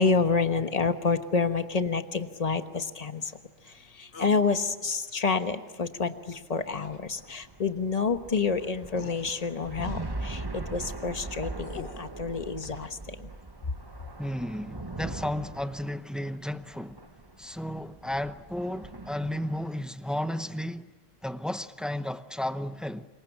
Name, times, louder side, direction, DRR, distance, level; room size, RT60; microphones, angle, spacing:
voice 1, 0.0-3.3 4.0-13.3, left 4 dB, 40° left, 1.3 m, -28 dB
sound 1, 4.1-4.4 6.7-7.0 8.3-8.4 8.9-9.2 11.2-12.1, left 5 dB, 75° left, 1.5 m, -44 dB
sound 2, 6.2-19.8, right 2 dB, 25° right, 1.1 m, -41 dB
voice 2, 14.2-17.0 17.4-20.9 21.2-23.1, left 1 dB, ahead, 0.7 m, -33 dB
27.0 x 23.0 x 8.9 m
omnidirectional pair, 1.0 m